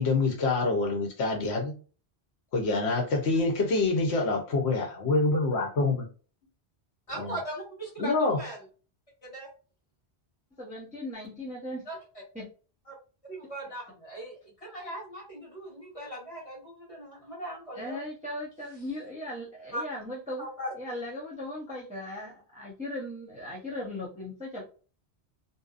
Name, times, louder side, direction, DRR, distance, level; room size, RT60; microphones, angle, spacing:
voice 1, 0.0-1.7 2.5-6.0 7.2-7.3 8.0-8.4, left 3 dB, 75° left, 2 dB, 0.9 m, -26 dB
voice 2, 7.1-8.6 9.2-9.5 11.8-12.0 12.9-13.0 13.2-18.0 19.7-19.8 20.4-20.7, right 1 dB, 35° left, -4 dB, 1.2 m, -39 dB
voice 3, 10.6-11.8 12.3-12.5 17.8-20.5 20.8-24.6, left 1 dB, 10° right, -4 dB, 0.6 m, -38 dB
2.7 x 2.1 x 2.4 m, 0.37 s
omnidirectional pair, 1.1 m